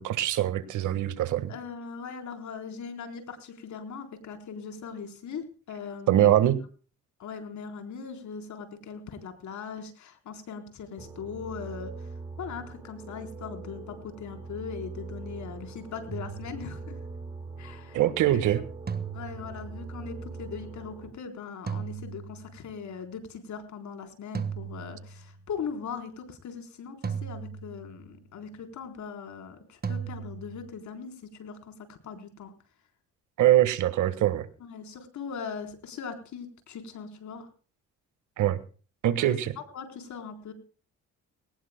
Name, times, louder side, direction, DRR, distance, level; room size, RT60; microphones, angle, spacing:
voice 1, 0.0-1.5 6.1-6.6 17.9-18.6 33.4-34.5 38.4-38.6 39.0-39.5, right 12 dB, 80° right, 13 dB, 1.6 m, -23 dB
voice 2, 1.5-6.5 7.2-11.9 12.4-17.0 17.6-18.0 19.1-32.5 34.7-37.5 39.2-39.3 39.7-40.5, left 6 dB, 70° left, 6 dB, 4.1 m, -40 dB
sound 1, 11.0-21.1, right 3 dB, 10° right, 5.8 m, -42 dB
sound 2, 16.1-17.1 18.9-20.0 21.7-22.8 24.3-25.5 27.0-28.2 29.8-30.7, right 6 dB, 30° right, 1.4 m, -37 dB
21.5 x 18.5 x 2.2 m, 0.39 s
cardioid pair, 90°, 30 cm